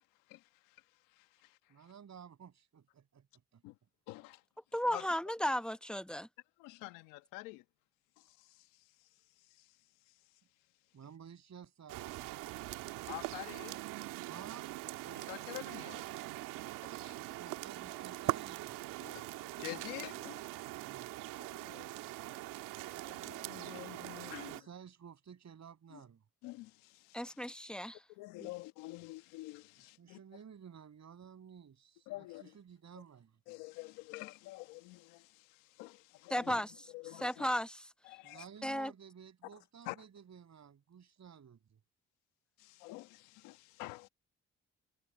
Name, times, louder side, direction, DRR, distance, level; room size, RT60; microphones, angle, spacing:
voice 1, 0.3-0.8 1.1-1.6 3.6-3.7 4.1-4.4 4.9-5.1 6.6-7.6 8.2-8.8 9.5-9.7 13.1-13.8 15.1-16.0 16.7-17.4 18.1-18.2 19.0-20.4 21.4-22.0 23.0-24.7 25.9-26.0 26.4-27.4 28.1-30.2 32.1-32.5 33.5-36.6 36.9-37.5 38.0-38.4 39.8-40.0 42.6-44.1, left 20 dB, 90° left, 1.3 m, -48 dB
voice 2, 1.7-3.2 3.5-3.6 10.9-13.1 14.3-14.7 17.2-19.2 20.7-21.1 24.3-26.2 30.0-33.3 38.2-41.8, right 8 dB, 60° right, 7.2 m, -54 dB
voice 3, 4.7-6.3 27.1-28.0 36.3-36.7 37.2-37.9 38.6-38.9, equal, 5° left, 1.1 m, -34 dB
sound 1, 11.9-24.6, right 17 dB, 85° right, 2.1 m, -42 dB
hypercardioid pair, 45°, 31 cm